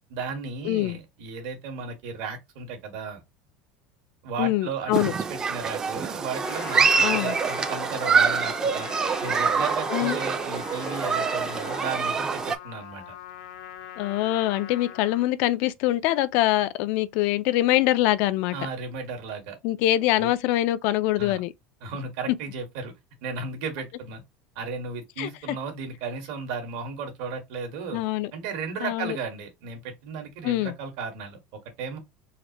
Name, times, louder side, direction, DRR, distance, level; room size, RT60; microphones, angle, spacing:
voice 1, 0.1-3.2 4.2-8.9 9.2-13.1 18.5-19.6 20.2-20.3 21.2-21.4 21.8-22.9 23.2-24.2 24.5-28.0 28.3-32.0, right 5 dB, 75° right, 1.6 m, -35 dB
voice 2, 0.7-1.0 4.4-5.1 7.0-7.3 9.9-10.2 14.0-18.6 19.6-21.5 25.2-25.3 27.9-28.3 28.8-29.2 30.4-30.7, left 15 dB, 65° left, 0.4 m, -24 dB
Human group actions, 4.9-12.6, right 5 dB, 20° right, 0.4 m, -25 dB
Trumpet, 6.3-15.3, left 11 dB, 85° left, 0.7 m, -41 dB
4.1 x 2.5 x 2.9 m
supercardioid pair, 135°, 3 cm